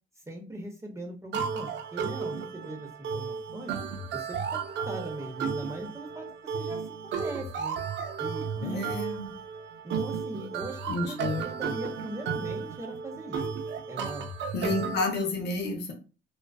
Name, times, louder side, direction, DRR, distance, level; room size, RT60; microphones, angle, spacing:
voice 1, 0.3-3.7 4.1-6.3 6.5-7.8 8.2-8.9 9.8-13.4 13.9-14.3, right 1 dB, 15° right, 1 dB, 0.6 m, -40 dB
sound 1, 1.3-15.0, right 6 dB, 65° right, 0.4 m, -34 dB
voice 2, 8.6-9.3 10.9-11.4 14.5-15.9, left 2 dB, 60° left, 3 dB, 0.7 m, -30 dB
2.3 x 2.3 x 2.3 m, 0.34 s
cardioid pair, 90°, 20 cm